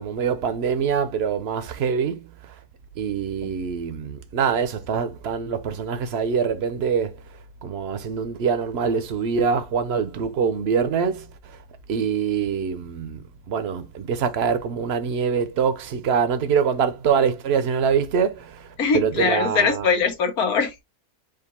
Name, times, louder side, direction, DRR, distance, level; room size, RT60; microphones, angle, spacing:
voice 1, 0.0-2.5 3.0-7.2 7.6-11.6 11.9-19.9, right 6 dB, 55° right, 0.8 m, -24 dB
voice 2, 18.8-20.8, left 5 dB, 85° left, 1.6 m, -22 dB
5.1 x 2.5 x 4.2 m
omnidirectional pair, 1.5 m